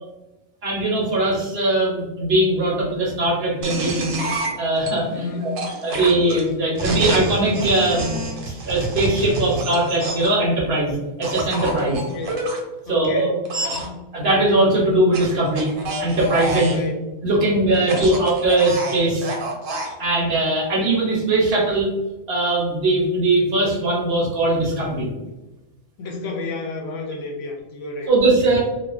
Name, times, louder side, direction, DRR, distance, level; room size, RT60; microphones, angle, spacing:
voice 1, 0.6-5.5 5.8-12.0 12.9-13.4 13.6-13.7 14.1-15.7 16.0-16.8 17.2-19.3 20.0-21.9 22.3-25.1 28.1-28.6, right 2 dB, 60° right, -4 dB, 0.9 m, -20 dB
sound 1, 3.6-4.9 5.6-10.4 11.2-12.6 13.5-13.9 15.1-16.9 17.7-19.9, right 2 dB, 80° right, 1.0 m, -28 dB
voice 2, 5.1-5.6 11.9-12.4 12.9-13.9 16.6-17.0 17.8-18.1 26.0-28.1 28.5-28.6, left 3 dB, 70° left, 0 dB, 0.9 m, -31 dB
2.4 x 2.3 x 2.3 m, 1.1 s
omnidirectional pair, 1.3 m